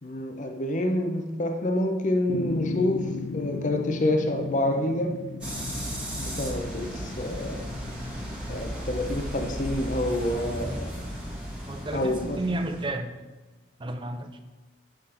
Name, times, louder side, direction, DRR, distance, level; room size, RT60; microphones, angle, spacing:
voice 1, 0.0-5.2 6.2-7.7 8.5-10.9 11.9-12.6, left 1 dB, 40° left, 4 dB, 0.7 m, -28 dB
sound 1, 2.3-8.7, left 4 dB, 85° left, 0.6 m, -36 dB
sound 2, 5.4-12.9, equal, 5° right, 1.7 m, -35 dB
voice 2, 11.7-13.1 13.8-14.4, right 2 dB, 25° right, 7 dB, 0.6 m, -32 dB
7.6 x 5.8 x 4.4 m, 1.2 s
head